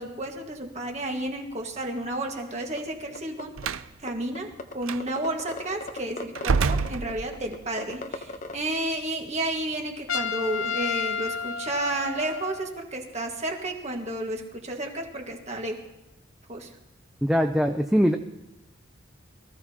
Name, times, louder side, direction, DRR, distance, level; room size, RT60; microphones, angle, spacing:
voice 1, 0.0-3.6 4.0-15.8 16.5-16.7, right 1 dB, 35° right, 2 dB, 1.7 m, -32 dB
sound 1, 2.8-2.9 3.2-3.7 4.1-4.2 4.4-4.7 5.0-8.6, left 2 dB, 40° left, 0.8 m, -36 dB
Slam, 3.6-3.9 4.8-5.0 6.3-7.6, right 5 dB, 90° right, 0.5 m, -26 dB
Trumpet, 10.1-12.8, left 6 dB, 85° left, 0.7 m, -31 dB
voice 2, 17.2-18.2, equal, 5° right, 5 dB, 0.5 m, -22 dB
23.0 x 14.5 x 2.9 m, 0.96 s
head